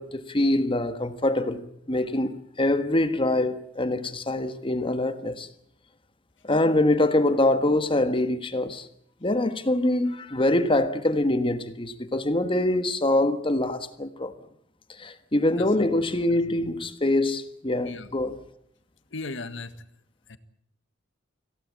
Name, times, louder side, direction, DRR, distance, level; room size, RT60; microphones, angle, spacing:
voice 1, 0.0-5.5 6.4-8.9 9.2-14.3 15.0-18.4, left 1 dB, 30° left, 1.4 m, -24 dB
voice 2, 16.3-16.8 17.8-18.1 19.1-19.8 20.3-20.4, left 3 dB, 70° left, 1.7 m, -38 dB
25.5 x 17.0 x 8.5 m
head